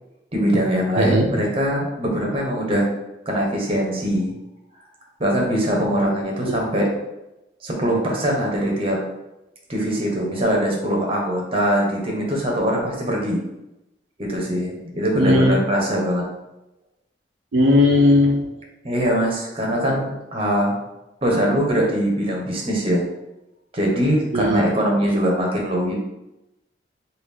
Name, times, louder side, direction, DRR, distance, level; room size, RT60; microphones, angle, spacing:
voice 1, 0.3-2.9 3.3-4.4 5.2-6.8 7.6-9.0 9.7-13.4 14.2-16.2 18.8-20.7 21.2-23.0 23.7-25.9, equal, 30° right, -1 dB, 0.9 m, -22 dB
voice 2, 1.0-1.3 6.5-6.6 15.1-15.6 17.5-18.6 24.3-24.7, left 1 dB, 80° right, 0 dB, 0.5 m, -17 dB
3.5 x 2.5 x 3.4 m, 0.92 s
head